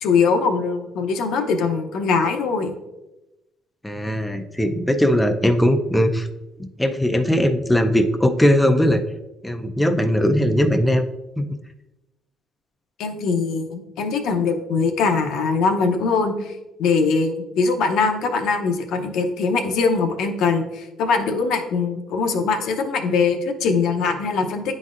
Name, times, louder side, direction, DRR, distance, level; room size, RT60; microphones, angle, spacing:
voice 1, 0.0-2.7 13.0-24.7, left 4 dB, 75° left, 5 dB, 0.7 m, -22 dB
voice 2, 3.8-6.3 6.6-9.0 9.4-11.1 11.4-11.5, equal, 5° left, 5 dB, 0.5 m, -19 dB
9.6 x 4.0 x 2.5 m, 0.98 s
cardioid pair, 100°, 0 cm